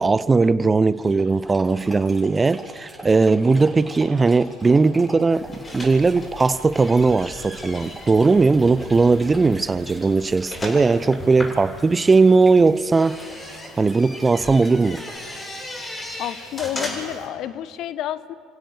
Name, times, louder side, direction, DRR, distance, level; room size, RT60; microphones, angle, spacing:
voice 1, 0.0-13.2 13.8-15.0, right 4 dB, 25° right, 0.5 m, -18 dB
Dog, 0.9-15.2, right 1 dB, 5° right, 6.9 m, -43 dB
sound 1, 5.4-17.3, left 1 dB, 25° left, 7.5 m, -37 dB
voice 2, 16.2-18.3, left 11 dB, 55° left, 0.8 m, -29 dB
29.0 x 16.0 x 6.9 m
hypercardioid pair, 60°, 0 cm